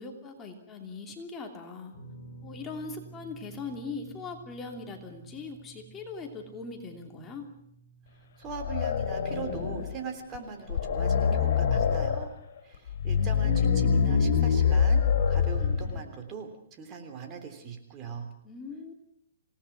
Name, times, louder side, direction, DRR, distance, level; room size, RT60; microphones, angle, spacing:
voice 1, 0.0-1.9 2.4-7.5 18.4-18.9, left 4 dB, 15° left, 2 dB, 2.9 m, -40 dB
sound 1, 1.9-14.2 14.4-14.7 16.3-16.4, right 3 dB, 50° left, 6.7 m, -53 dB
voice 2, 8.4-12.3 12.6-18.3, right 6 dB, 25° right, 6 dB, 3.5 m, -41 dB
sound 2, 8.5-10.0 10.3-10.4 10.7-12.3 12.9-16.0, left 6 dB, 65° left, 4.8 m, -25 dB
27.0 x 18.5 x 6.1 m, 0.76 s
hypercardioid pair, 150°, 0 cm